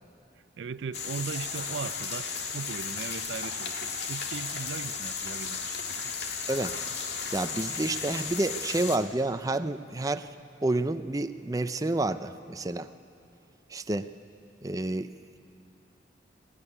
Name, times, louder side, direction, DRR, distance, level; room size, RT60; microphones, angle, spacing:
voice 1, 0.6-6.2, right 5 dB, 85° right, 16 dB, 0.4 m, -38 dB
sound 1, 0.9-9.0, left 5 dB, 70° left, 1.8 m, -34 dB
voice 2, 7.3-10.3 10.6-12.9 13.7-14.1 14.6-15.1, right 2 dB, 20° right, 10 dB, 0.5 m, -29 dB
20.5 x 14.0 x 9.9 m, 2.7 s
head